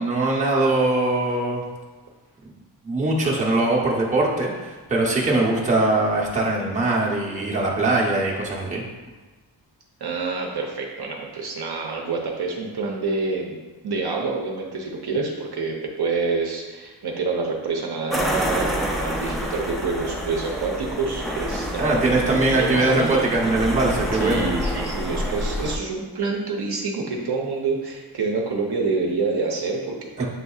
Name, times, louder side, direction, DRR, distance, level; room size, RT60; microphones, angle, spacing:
voice 1, 0.0-1.6 2.8-8.8 21.8-24.5 30.2-30.3, right 2 dB, 15° right, -4 dB, 0.8 m, -21 dB
voice 2, 10.0-13.6 13.8-23.3 24.1-30.3, right 4 dB, 60° right, -1 dB, 0.7 m, -27 dB
sound 1, 18.1-25.8, equal, ahead, 0.4 m, -28 dB
7.8 x 2.7 x 2.3 m, 1.3 s
wide cardioid pair, 150°, 44 cm